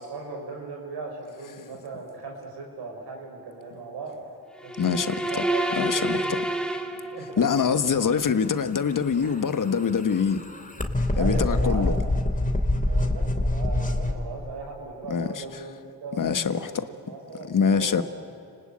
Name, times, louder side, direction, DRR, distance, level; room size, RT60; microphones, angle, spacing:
voice 1, 0.0-4.1 4.6-6.4 6.8-7.4 9.2-9.4 11.2-11.9 12.9-16.7 17.1-18.0, right 4 dB, 80° right, 5.8 m, -38 dB
sound 1, 4.6-7.6, right 1 dB, ahead, 2.5 m, -28 dB
voice 2, 4.8-5.4 5.7-6.4 7.4-10.4 11.2-11.9 15.1-15.6 16.2-16.7 17.4-18.0, left 6 dB, 55° left, 1.6 m, -24 dB
sound 2, 9.0-14.1, left 1 dB, 20° left, 2.9 m, -25 dB
30.0 x 19.5 x 8.8 m
supercardioid pair, 45°, 39 cm